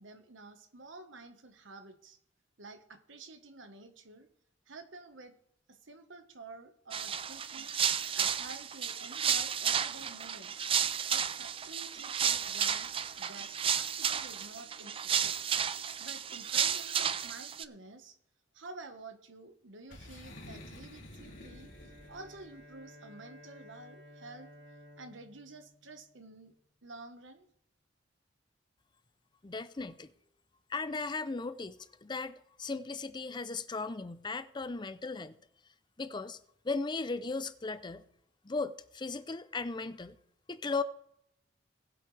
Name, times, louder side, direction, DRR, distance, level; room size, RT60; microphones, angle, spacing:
voice 1, 0.0-2.2 2.6-4.3 4.7-5.3 5.7-10.7 11.1-12.9 13.1-15.5 16.0-18.2 18.5-21.7 22.1-24.5 25.0-26.5 26.8-27.5, right 3 dB, 90° right, 1.4 m, -50 dB
sound 1, 6.9-17.6, right 8 dB, 30° right, 0.4 m, -32 dB
Boom, 19.9-22.6, left 1 dB, 75° left, 2.8 m, -50 dB
Bowed string instrument, 21.1-26.6, left 1 dB, 60° right, 3.3 m, -56 dB
voice 2, 29.4-30.1 30.7-35.4 36.0-36.4 36.6-38.0 38.4-40.2 40.5-40.8, left 3 dB, 25° left, 0.5 m, -37 dB
19.5 x 7.6 x 3.3 m
head